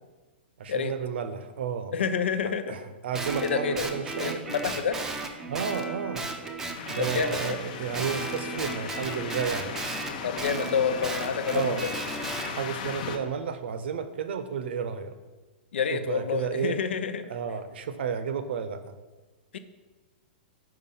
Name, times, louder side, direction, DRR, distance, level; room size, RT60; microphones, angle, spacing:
voice 1, 0.6-1.9 2.7-4.7 5.5-6.3 6.9-9.7 11.5-11.8 12.4-15.2 15.9-16.8 17.3-18.8, right 7 dB, 75° right, 10 dB, 0.7 m, -32 dB
voice 2, 1.9-2.8 3.4-3.9 4.2-5.0 7.0-7.6 10.2-11.9 15.7-17.3 19.5-19.6, left 6 dB, 90° left, 10 dB, 0.6 m, -28 dB
Guitar, 3.1-7.6 7.9-12.5, right 3 dB, 10° right, 0.5 m, -35 dB
sound 1, 6.7-13.2, left 6 dB, 45° left, 0.6 m, -37 dB
5.8 x 4.8 x 5.6 m, 1.2 s
hypercardioid pair, 165°, 6 cm